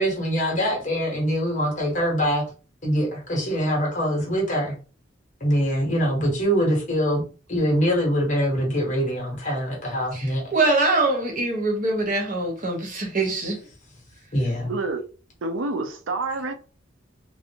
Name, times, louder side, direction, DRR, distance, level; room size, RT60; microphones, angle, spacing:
voice 1, 0.0-2.4 2.8-4.7 5.4-7.2 7.5-10.4 14.3-14.7, equal, 40° left, 1.3 m, -23 dB
voice 2, 10.1-13.6, right 2 dB, 40° right, 1.0 m, -23 dB
voice 3, 14.7-15.0 15.4-16.5, right 3 dB, 80° right, 0.5 m, -28 dB
3.1 x 2.7 x 2.8 m
head